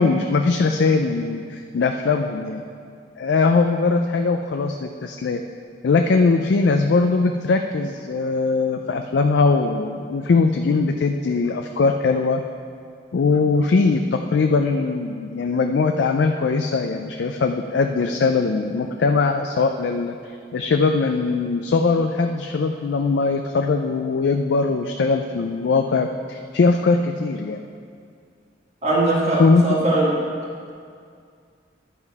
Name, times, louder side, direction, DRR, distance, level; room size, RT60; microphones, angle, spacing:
voice 1, 0.0-2.6 3.2-5.4 5.8-12.4 13.1-20.2 20.5-27.6 29.4-29.8, left 4 dB, 65° left, 5 dB, 0.4 m, -20 dB
voice 2, 28.8-30.1, right 2 dB, 40° right, -5 dB, 1.6 m, -20 dB
11.0 x 5.5 x 4.7 m, 2.2 s
head